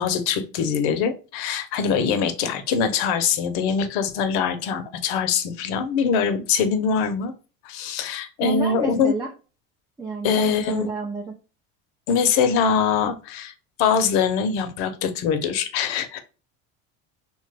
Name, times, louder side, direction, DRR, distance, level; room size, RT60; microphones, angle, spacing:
voice 1, 0.0-7.3 7.6-9.1 10.2-10.9 12.1-13.5 13.8-16.2, left 6 dB, 75° left, 9 dB, 0.7 m, -23 dB
voice 2, 8.4-9.3 10.0-11.3, right 2 dB, 10° right, 0 dB, 0.5 m, -29 dB
2.9 x 2.3 x 3.2 m, 0.35 s
supercardioid pair, 120°, 33 cm